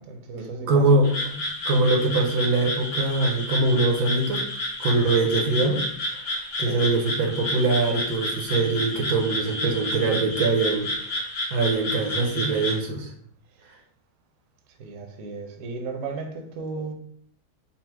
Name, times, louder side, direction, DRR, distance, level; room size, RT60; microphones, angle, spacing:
voice 1, 0.0-1.0 6.7-6.9 14.7-16.9, right 4 dB, 60° right, 3 dB, 0.9 m, -35 dB
voice 2, 0.7-4.4 4.8-5.8 6.6-11.2 11.5-13.1, right 3 dB, 80° right, 2 dB, 1.3 m, -23 dB
Frog, 1.0-12.8, left 1 dB, 45° left, 1.0 m, -30 dB
4.2 x 2.1 x 4.4 m, 0.63 s
omnidirectional pair, 1.7 m